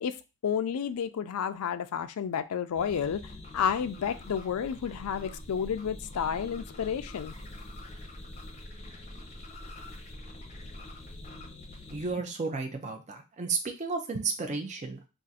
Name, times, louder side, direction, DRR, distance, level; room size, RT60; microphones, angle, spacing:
voice 1, 0.4-3.2 3.5-7.3, left 7 dB, 80° left, 0.4 m, -31 dB
sound 1, 2.7-12.1, left 1 dB, 30° left, 0.7 m, -44 dB
voice 2, 11.9-15.1, right 4 dB, 35° right, 0.5 m, -33 dB
2.5 x 2.4 x 4.0 m
head